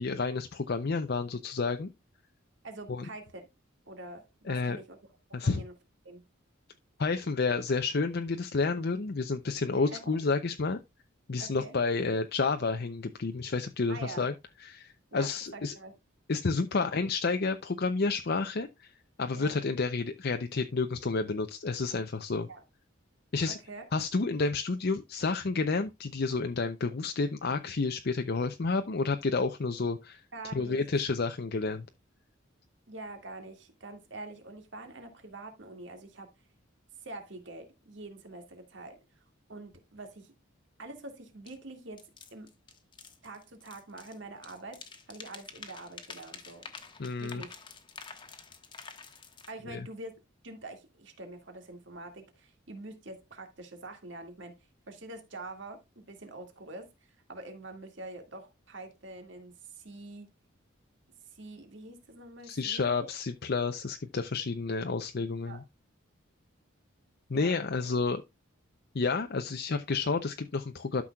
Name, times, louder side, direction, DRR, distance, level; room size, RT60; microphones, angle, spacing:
voice 1, 0.0-1.9 2.9-3.1 4.5-4.8 5.3-5.6 7.0-10.8 11.3-14.3 14.6-15.7 16.3-18.9 19.2-22.5 23.3-23.6 23.9-30.2 30.5-31.9 47.0-47.4 49.7-49.9 62.4-65.6 67.3-68.2 68.9-71.0, left 4 dB, 55° left, 0.6 m, -30 dB
voice 2, 2.6-3.5 3.9-5.0 5.3-5.7 6.0-6.2 9.8-10.2 11.4-11.7 13.9-14.3 15.1-16.0 19.3-19.6 22.5-22.6 23.5-23.9 30.3-30.8 32.9-36.3 37.0-39.2 39.5-40.3 40.8-42.5 43.2-46.7 47.2-47.5 49.5-54.6 54.9-56.9 57.3-60.3 61.3-63.1 65.5-65.6 67.3-67.6, right 2 dB, 60° right, 2.1 m, -45 dB
sound 1, 41.5-41.6 42.0-44.2 44.4-49.5, left 5 dB, 25° left, 1.1 m, -48 dB
12.5 x 6.1 x 2.3 m
head